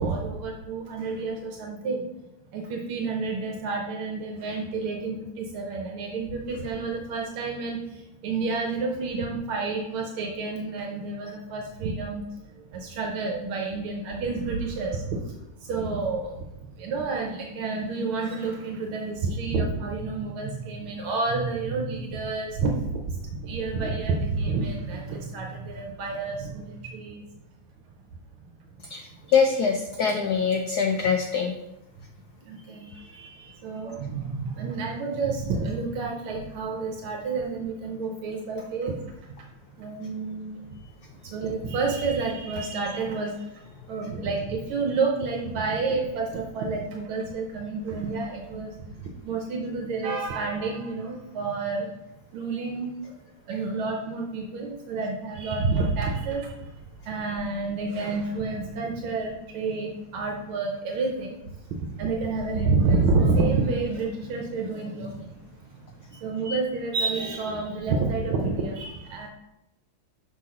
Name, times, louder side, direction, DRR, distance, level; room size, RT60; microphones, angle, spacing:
voice 1, 0.0-2.1 2.5-12.2 12.5-27.2 32.4-39.0 39.8-40.9 41.2-43.6 43.9-51.9 52.3-53.1 53.5-56.7 57.0-69.3, right 4 dB, 75° right, 0 dB, 1.6 m, -29 dB
voice 2, 28.9-31.5, left 6 dB, 80° left, 4 dB, 0.8 m, -24 dB
6.1 x 5.8 x 3.7 m, 0.91 s
omnidirectional pair, 2.4 m